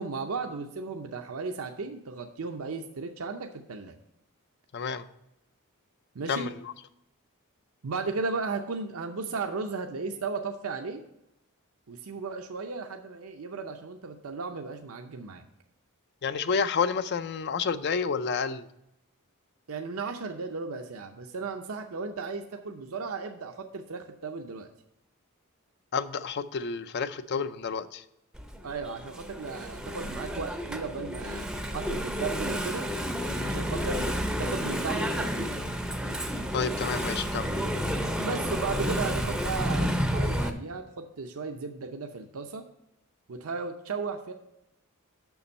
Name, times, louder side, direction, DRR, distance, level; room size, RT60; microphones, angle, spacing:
voice 1, 0.0-3.9 6.1-6.5 7.8-11.0 11.9-15.4 19.7-24.7 28.6-32.9 33.4-35.5 38.2-42.6 43.3-44.3, right 4 dB, 75° right, 5 dB, 0.6 m, -35 dB
voice 2, 4.7-5.1 6.3-6.7 16.2-18.7 25.9-28.0 36.5-37.7, left 5 dB, 50° left, 13 dB, 0.5 m, -30 dB
Engine / Mechanisms, 28.3-40.5, equal, 5° right, 0.5 m, -30 dB
7.0 x 6.1 x 5.3 m, 0.86 s
head